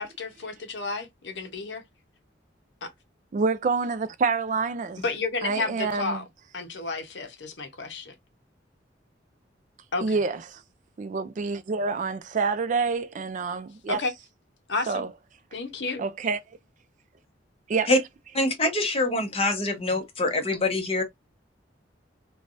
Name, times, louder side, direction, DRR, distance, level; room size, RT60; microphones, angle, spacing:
voice 1, 0.0-1.8 2.8-2.9 5.0-6.2 6.5-8.1 9.9-10.2 13.9-14.1 14.7-15.0 15.5-16.0, left 3 dB, 70° left, 0.8 m, -31 dB
voice 2, 3.3-5.0 5.4-6.2 10.0-10.6 11.0-14.0 14.9-15.1 16.0-16.4 17.7-17.9, right 4 dB, 40° right, 0.3 m, -27 dB
voice 3, 18.3-21.0, left 2 dB, 30° left, 0.9 m, -24 dB
3.2 x 2.3 x 2.5 m
head